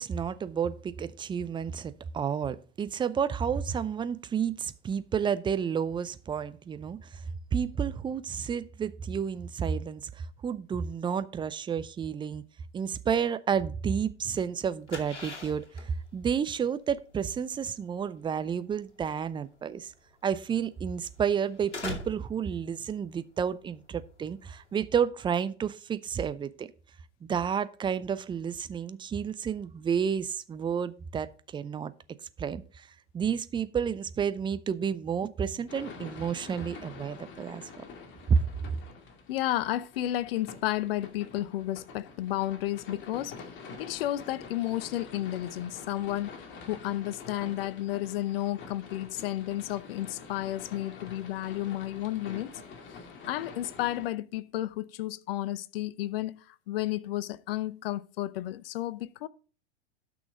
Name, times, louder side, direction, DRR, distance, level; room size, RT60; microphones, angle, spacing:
voice 1, 0.0-7.2 7.5-12.4 12.7-19.9 20.2-26.7 27.2-31.9 32.4-32.9 33.1-37.8 38.3-38.4, right 7 dB, 15° right, 0.5 m, -31 dB
sound 1, 14.4-24.8, left 3 dB, 85° left, 2.5 m, -44 dB
sound 2, 35.7-54.1, left 4 dB, 35° left, 2.2 m, -47 dB
voice 2, 39.3-43.5 43.8-52.5 53.3-59.3, left 14 dB, 55° left, 0.8 m, -32 dB
12.5 x 6.2 x 3.6 m
figure-of-eight pair, 95°, 35 cm